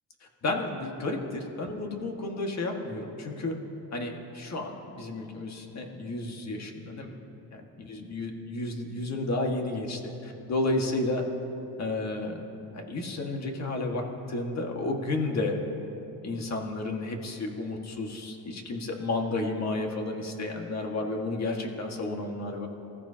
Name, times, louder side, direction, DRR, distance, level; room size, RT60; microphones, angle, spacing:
voice 1, 0.4-3.6 3.9-7.1 7.5-11.2 11.8-12.4 12.7-15.6 16.2-22.7, left 2 dB, 40° left, 2 dB, 1.8 m, -32 dB
25.5 x 14.5 x 2.9 m, 3.0 s
cardioid pair, 130°, 40 cm